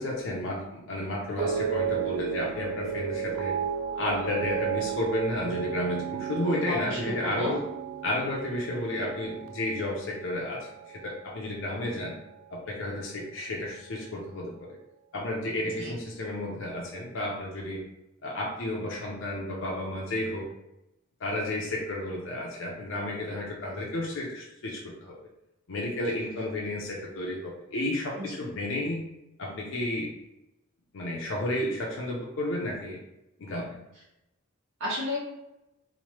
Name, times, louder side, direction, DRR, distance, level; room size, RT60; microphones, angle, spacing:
voice 1, 0.0-3.6 3.9-7.6 8.0-10.7 11.0-12.2 12.5-14.8 15.1-17.8 18.2-20.5 21.2-25.2 25.7-29.0 29.4-30.1 30.9-33.0 33.4-33.8, left 1 dB, 70° left, -2 dB, 0.5 m, -32 dB
sound 1, 1.4-11.7 12.0-12.6, right 7 dB, 90° right, 0.3 m, -33 dB
voice 2, 6.7-7.6 15.8-15.9 28.2-28.3 34.8-35.2, left 1 dB, 65° right, -7 dB, 0.7 m, -32 dB
3.0 x 2.1 x 3.0 m, 0.89 s
head